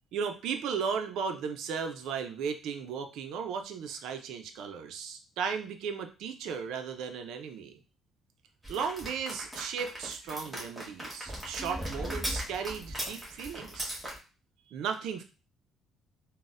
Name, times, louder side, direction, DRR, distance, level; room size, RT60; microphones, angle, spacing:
voice 1, 0.1-7.8 8.7-14.0 14.7-15.2, right 6 dB, 75° right, 6 dB, 0.4 m, -35 dB
sound 1, 8.6-14.2, equal, 5° right, 1.1 m, -38 dB
3.9 x 2.1 x 2.5 m, 0.33 s
cardioid pair, 125°, 0 cm